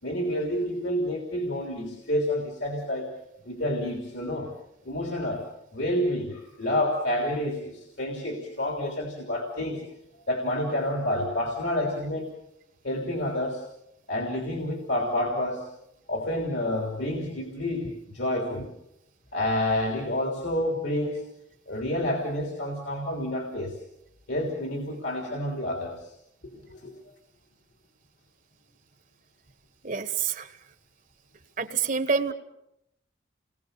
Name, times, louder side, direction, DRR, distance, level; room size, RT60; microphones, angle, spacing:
voice 1, 0.0-3.1 3.4-4.5 4.8-5.5 5.7-9.9 10.3-12.3 12.8-13.6 14.1-15.7 16.1-18.7 19.3-21.2 21.7-23.8 24.3-26.1 26.5-26.9, left 1 dB, 70° left, 2 dB, 3.4 m, -29 dB
voice 2, 29.8-30.5 31.6-32.3, right 5 dB, 45° right, 10 dB, 1.3 m, -27 dB
29.5 x 20.5 x 6.8 m, 0.82 s
head